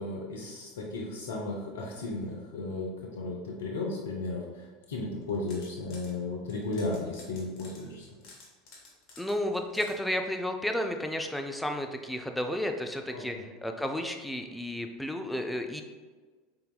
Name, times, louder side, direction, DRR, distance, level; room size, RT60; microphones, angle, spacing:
voice 1, 0.0-8.2 13.1-13.4, left 2 dB, 75° left, -1 dB, 0.5 m, -35 dB
sound 1, 5.2-6.1 6.5-9.9, left 3 dB, 55° left, 1.0 m, -52 dB
voice 2, 9.2-13.3 13.6-15.8, left 1 dB, 5° left, 4 dB, 0.4 m, -32 dB
3.9 x 3.8 x 2.2 m, 1.4 s
hypercardioid pair, 80°, 0 cm